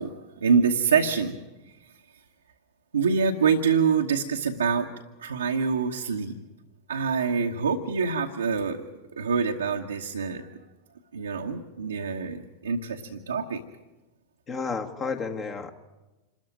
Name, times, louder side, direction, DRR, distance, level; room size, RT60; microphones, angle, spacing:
voice 1, 0.0-1.3 2.9-4.9 5.2-6.3 6.9-8.8 9.2-10.6 11.1-13.6, right 5 dB, 70° right, 1 dB, 1.2 m, -25 dB
voice 2, 14.5-15.7, left 5 dB, 25° left, 5 dB, 1.6 m, -31 dB
27.0 x 13.5 x 9.3 m, 1.1 s
figure-of-eight pair, 90°, 0 cm